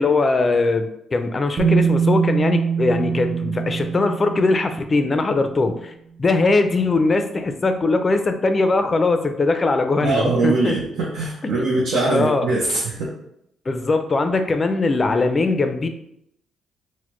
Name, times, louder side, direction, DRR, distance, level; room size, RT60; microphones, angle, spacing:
voice 1, 0.0-5.9 6.2-10.8 12.1-12.5 13.7-15.9, left 3 dB, 30° left, 8 dB, 0.4 m, -20 dB
Bass guitar, 1.6-5.5 6.6-6.7, right 6 dB, 30° right, 0.7 m, -23 dB
voice 2, 10.0-13.1, right 2 dB, 75° right, -5 dB, 0.7 m, -22 dB
4.1 x 2.1 x 3.0 m, 0.76 s
cardioid pair, 90°, 0 cm